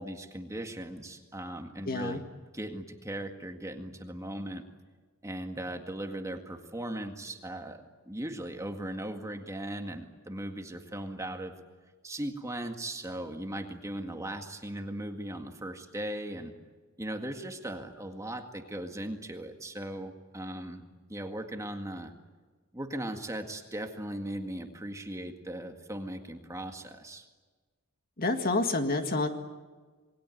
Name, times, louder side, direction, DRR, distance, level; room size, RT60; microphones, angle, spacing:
voice 1, 0.0-2.3 2.5-4.6 5.2-11.6 12.0-16.5 17.0-20.8 21.1-22.1 22.7-27.3, right 1 dB, 15° right, 5 dB, 1.9 m, -38 dB
voice 2, 1.9-2.2 28.2-29.3, left 2 dB, 45° left, 6 dB, 2.0 m, -28 dB
27.5 x 21.0 x 9.3 m, 1.4 s
head